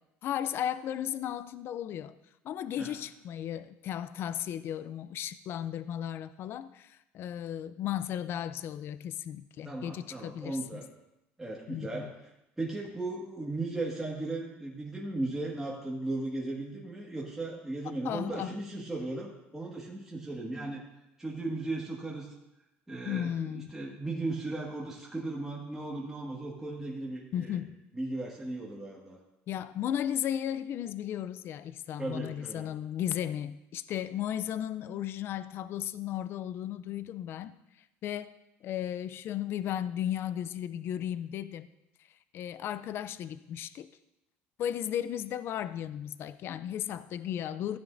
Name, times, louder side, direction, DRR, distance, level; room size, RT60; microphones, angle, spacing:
voice 1, 0.2-2.1 2.4-10.8 11.7-12.1 18.0-18.5 23.1-23.7 27.3-27.8 29.5-37.5 38.0-38.3 38.6-41.7 42.3-43.9 44.6-47.8, left 10 dB, 50° left, 14 dB, 0.5 m, -35 dB
voice 2, 9.6-10.8 11.4-12.1 12.6-20.8 21.2-22.3 22.9-27.6 27.9-29.2 32.0-32.7, right 2 dB, 10° right, -4 dB, 1.8 m, -36 dB
15.0 x 9.4 x 2.6 m, 0.89 s
cardioid pair, 115°, 5 cm